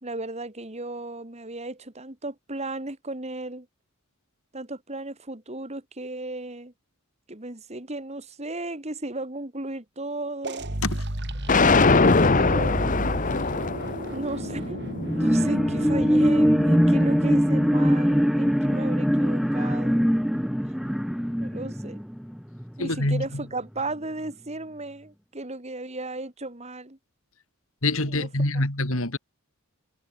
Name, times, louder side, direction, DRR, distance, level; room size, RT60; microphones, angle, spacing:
voice 1, 0.0-3.7 4.5-6.7 7.3-10.7 12.3-13.1 14.1-14.8 15.1-20.1 21.4-22.0 22.8-27.0 28.0-28.3, right 2 dB, 30° right, 2.5 m, -34 dB
sound 1, 10.4-17.1, right 1 dB, 55° right, 4.5 m, -33 dB
sound 2, 11.5-17.6, left 3 dB, 35° left, 1.0 m, -24 dB
sound 3, 15.0-22.8 23.2-23.3, equal, ahead, 1.4 m, -22 dB
voice 2, 22.8-23.4 27.8-29.2, left 2 dB, 70° left, 4.2 m, -25 dB
head